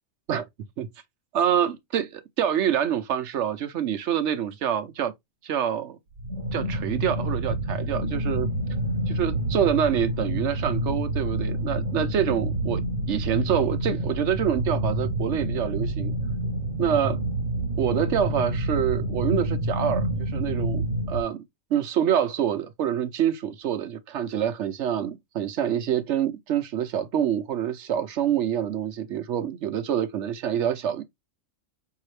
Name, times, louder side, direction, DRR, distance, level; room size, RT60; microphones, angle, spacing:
voice 1, 1.3-5.1 5.4-6.0 6.5-8.5 9.1-12.8 13.1-16.1 16.8-17.2 17.8-21.4 21.7-31.0, right 9 dB, 70° right, 0.9 m, -26 dB
sound 1, 6.2-21.2, right 1 dB, 90° right, 1.3 m, -28 dB
5.5 x 2.8 x 3.1 m
omnidirectional pair, 1.3 m